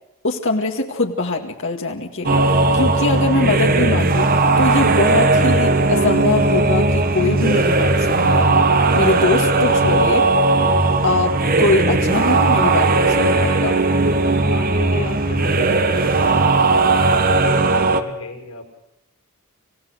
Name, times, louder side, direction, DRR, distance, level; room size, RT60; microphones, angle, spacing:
voice 1, 0.2-4.3 4.6-8.6 8.9-10.2 11.0-13.7, left 2 dB, 65° left, 2 dB, 2.1 m, -22 dB
sound 1, 2.2-18.0, right 2 dB, 45° right, 1.6 m, -17 dB
voice 2, 8.3-8.7 9.7-10.3 12.1-12.3 14.5-18.6, left 2 dB, 80° left, 3 dB, 5.7 m, -33 dB
26.5 x 17.0 x 6.4 m, 0.85 s
head